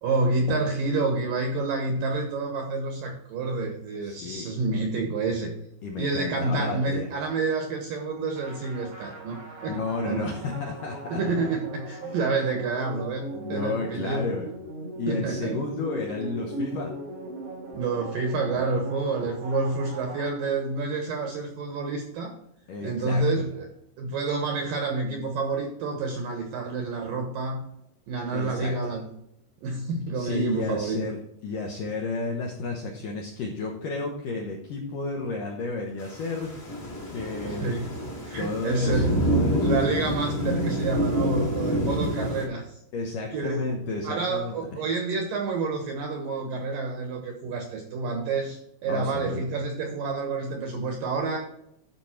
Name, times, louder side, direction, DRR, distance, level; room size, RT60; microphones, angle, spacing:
voice 1, 0.0-5.5 6.0-10.2 11.1-14.3 15.1-15.6 17.7-22.3 22.8-23.7 24.0-27.6 28.1-29.1 29.6-31.0 37.5-38.0 38.2-39.3 39.6-42.8 43.3-43.7 44.0-51.4, right 3 dB, 70° right, 3 dB, 2.2 m, -28 dB
voice 2, 4.0-4.5 5.8-7.1 9.7-11.2 12.0-12.2 13.3-14.5 15.0-16.9 22.7-23.5 28.3-28.7 30.2-36.5 37.1-37.7 38.4-39.8 42.9-44.8 48.9-49.4, left 3 dB, 75° left, 1 dB, 1.9 m, -32 dB
sound 1, 8.3-20.9, right 2 dB, 50° right, 1.0 m, -39 dB
Thunder / Rain, 36.0-42.5, equal, 25° left, 1.5 m, -27 dB
12.0 x 5.3 x 4.4 m, 0.77 s
omnidirectional pair, 5.4 m